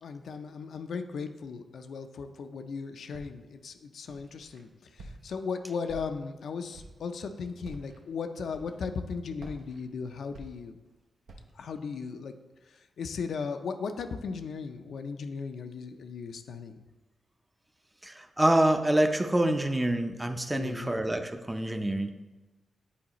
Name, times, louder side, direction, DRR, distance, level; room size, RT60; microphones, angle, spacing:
voice 1, 0.0-10.8 11.5-12.4 12.7-16.8 20.5-21.0, left 5 dB, 80° left, 7 dB, 0.4 m, -37 dB
Walk footsteps, 3.1-3.6 4.1-4.6 5.0-5.5 5.9-6.4 6.7-7.1 7.6-8.0 8.5-9.0 9.4-10.9 11.3-11.6, right 2 dB, 85° right, 0.8 m, -48 dB
voice 2, 18.0-22.1, right 1 dB, 15° right, 7 dB, 0.5 m, -26 dB
8.5 x 4.0 x 3.0 m, 1.1 s
cardioid pair, 80°, 0 cm